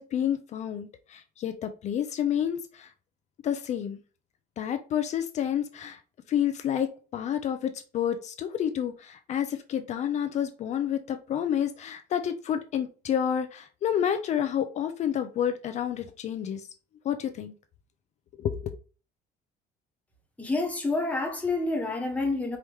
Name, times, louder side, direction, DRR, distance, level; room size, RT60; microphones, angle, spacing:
voice 1, 0.0-2.9 3.4-4.0 4.6-6.0 6.3-16.6 17.0-17.5 18.4-18.6, left 9 dB, 40° left, 0.5 m, -29 dB
voice 2, 20.4-22.6, left 2 dB, 10° left, 1.1 m, -28 dB
4.8 x 2.9 x 3.4 m
cardioid pair, 170°, 18 cm